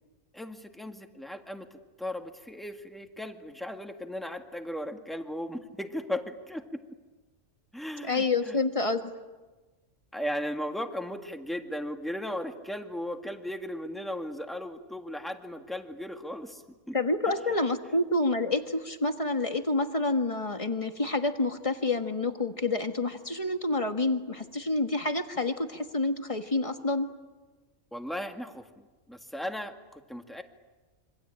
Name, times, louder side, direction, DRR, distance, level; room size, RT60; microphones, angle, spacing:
voice 1, 0.3-6.8 7.7-8.6 10.1-17.0 27.9-30.4, left 1 dB, ahead, 5 dB, 1.8 m, -37 dB
voice 2, 8.0-9.1 16.9-27.1, left 2 dB, 25° left, 7 dB, 1.6 m, -28 dB
26.5 x 25.0 x 8.9 m, 1.3 s
omnidirectional pair, 1.3 m